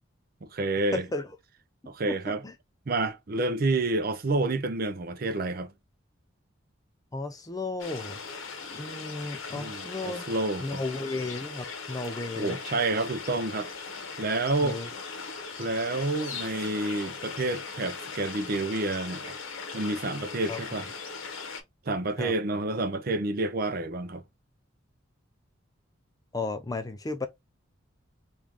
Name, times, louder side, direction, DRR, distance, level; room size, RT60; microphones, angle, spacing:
voice 1, 0.4-1.1 1.9-2.4 2.9-5.7 9.6-10.8 12.4-13.7 14.2-14.8 15.6-19.4 19.7-20.9 21.9-24.2, right 2 dB, 45° right, 0.5 m, -29 dB
voice 2, 0.9-1.3 2.1-2.2 2.4-2.5 7.1-8.2 8.7-10.2 10.6-12.6 14.6-14.9 20.5-20.6 22.2-22.3 26.3-27.3, left 3 dB, 15° left, 0.4 m, -34 dB
sound 1, 7.8-21.6, left 4 dB, 80° left, 0.8 m, -39 dB
3.6 x 2.5 x 2.9 m
head